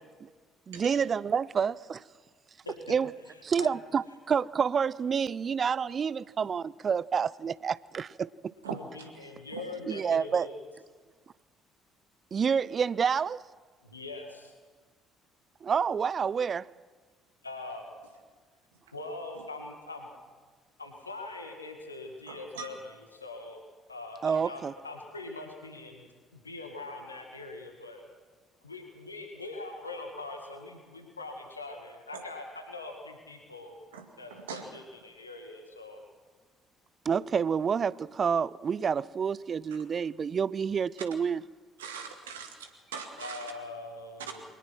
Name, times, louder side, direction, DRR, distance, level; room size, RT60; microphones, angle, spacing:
voice 1, 0.7-2.0 2.9-3.1 3.4-8.3 9.9-10.5 12.3-13.4 15.6-16.7 24.2-24.7 37.1-41.4, right 6 dB, 40° right, 0.5 m, -28 dB
voice 2, 3.3-3.7 8.6-10.6 13.8-14.5 17.4-17.9 18.9-20.1 20.8-23.6 23.9-26.1 26.3-28.1 28.6-33.7 34.2-36.0 43.2-44.4, left 2 dB, 90° left, 1.9 m, -42 dB
voice 3, 22.3-22.7 32.1-32.2 33.9-34.0 34.3-34.6 41.8-43.5, right 7 dB, 80° right, 2.1 m, -41 dB
22.5 x 19.5 x 6.1 m
figure-of-eight pair, 50°, 0 cm